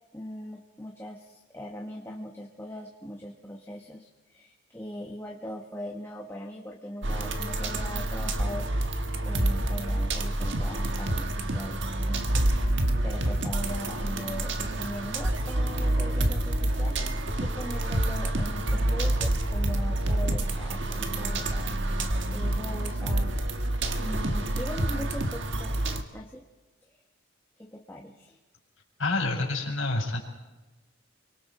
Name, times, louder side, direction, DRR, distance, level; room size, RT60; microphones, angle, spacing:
voice 1, 0.1-9.0 9.2-11.8 12.1-12.5 12.7-23.4 24.0-25.8 26.1-26.5 26.9-27.0 27.6-28.4, equal, 10° left, 0 dB, 1.3 m, -40 dB
sound 1, 7.0-26.0, right 1 dB, 60° right, 1.5 m, -28 dB
voice 2, 29.0-30.2, left 2 dB, 70° left, 0 dB, 5.0 m, -28 dB
29.0 x 24.0 x 4.3 m, 1.2 s
head